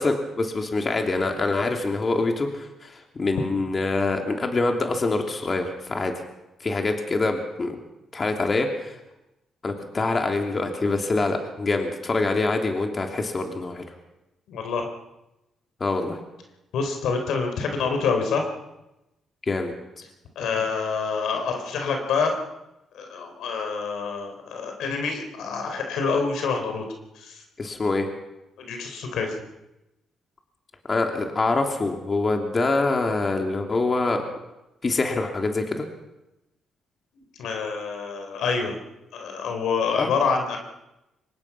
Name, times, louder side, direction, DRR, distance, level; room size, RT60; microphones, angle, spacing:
voice 1, 0.0-6.1 6.6-7.8 8.1-9.0 9.6-13.8 15.8-16.2 19.4-19.7 27.6-28.1 30.9-34.2 34.8-35.8 40.0-40.1, left 3 dB, 35° left, 3 dB, 2.9 m, -25 dB
voice 2, 14.5-14.9 16.7-18.4 20.4-22.3 22.9-26.8 27.2-27.4 28.6-29.3 37.4-38.7 39.1-40.6, left 5 dB, 80° left, 4 dB, 4.1 m, -26 dB
24.0 x 19.5 x 6.0 m, 0.95 s
supercardioid pair, 70°, 0 cm